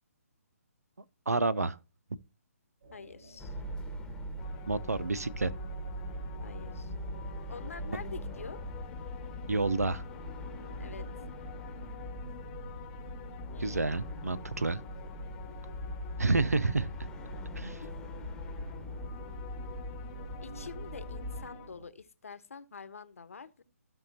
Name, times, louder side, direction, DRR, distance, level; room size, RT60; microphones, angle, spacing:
voice 1, 1.3-1.8 4.7-5.5 9.5-10.0 13.6-14.8 16.2-17.1 17.5-17.8, right 3 dB, 80° right, 0.7 m, -29 dB
sound 1, 2.8-21.9, right 1 dB, 65° right, 5.9 m, -52 dB
voice 2, 2.9-3.6 6.4-6.9 7.5-8.6 10.8-11.1 13.5-13.8 20.4-23.6, left 5 dB, 65° left, 1.1 m, -46 dB
sound 2, 3.4-21.5, equal, 10° left, 1.2 m, -41 dB
sound 3, 4.4-21.7, left 13 dB, 25° left, 0.8 m, -51 dB
15.5 x 5.4 x 2.8 m
figure-of-eight pair, 135°, 8 cm